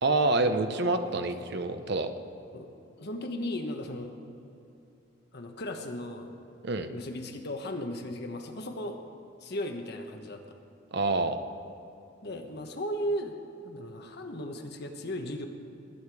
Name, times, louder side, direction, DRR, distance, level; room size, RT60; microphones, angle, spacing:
voice 1, 0.0-2.1 6.6-6.9 10.9-11.4, right 2 dB, 60° right, 8 dB, 0.8 m, -27 dB
voice 2, 1.0-1.6 2.5-2.7 3.0-4.1 5.3-6.3 6.9-9.0 9.4-10.6 12.2-13.3 13.6-15.5, left 1 dB, 60° left, 4 dB, 1.2 m, -36 dB
20.0 x 8.8 x 4.9 m, 2.8 s
head